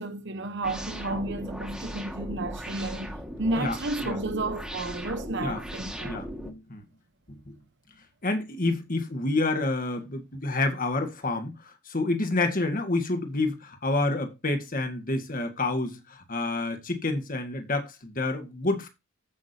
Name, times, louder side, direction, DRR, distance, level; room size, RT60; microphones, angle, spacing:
voice 1, 0.0-6.2, right 2 dB, 55° right, 1.1 m, -32 dB
sound 1, 0.6-6.5, equal, 5° right, 1.7 m, -38 dB
voice 2, 6.0-6.8 7.3-7.6 8.2-18.9, left 2 dB, 40° left, 1.9 m, -28 dB
14.5 x 6.2 x 2.9 m
head